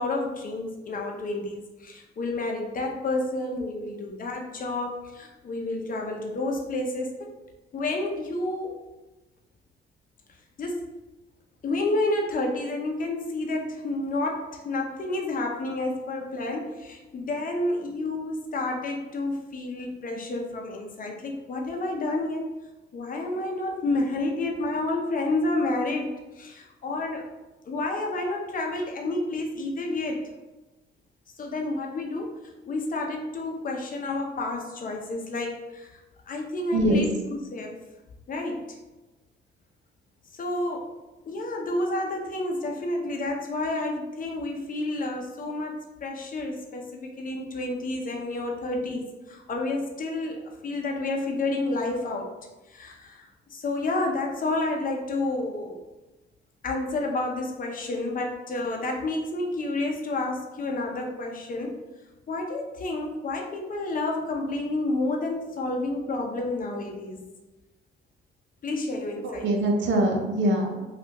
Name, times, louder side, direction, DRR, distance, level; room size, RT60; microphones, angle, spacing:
voice 1, 0.0-7.1 7.7-8.8 10.6-10.8 11.6-22.6 22.9-27.3 27.7-30.3 31.4-36.0 36.3-37.8 38.3-38.8 40.3-40.9 41.3-52.3 52.7-55.8 56.6-61.7 62.3-67.2 68.6-69.5, left 2 dB, 45° left, 1 dB, 0.6 m, -30 dB
voice 2, 36.7-37.0 69.2-70.8, right 1 dB, 70° right, 1 dB, 0.7 m, -23 dB
3.3 x 2.4 x 2.9 m, 1.1 s
cardioid pair, 90°, 20 cm